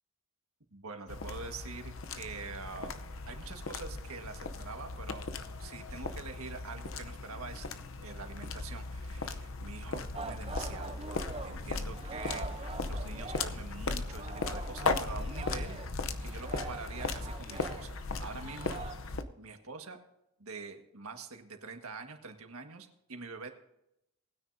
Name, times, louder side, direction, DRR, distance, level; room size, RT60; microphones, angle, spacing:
voice 1, 0.7-2.9 3.3-5.3 5.6-7.7 8.0-11.0 11.4-15.8 16.2-17.9 18.2-18.8 19.4-20.0 20.4-23.5, right 4 dB, 75° right, 5 dB, 1.6 m, -45 dB
sound 1, 1.1-19.2, left 3 dB, 65° left, 0.8 m, -37 dB
Singing, 10.1-13.7 14.0-18.9, right 3 dB, 25° right, 0.7 m, -44 dB
20.0 x 9.7 x 2.7 m, 0.84 s
head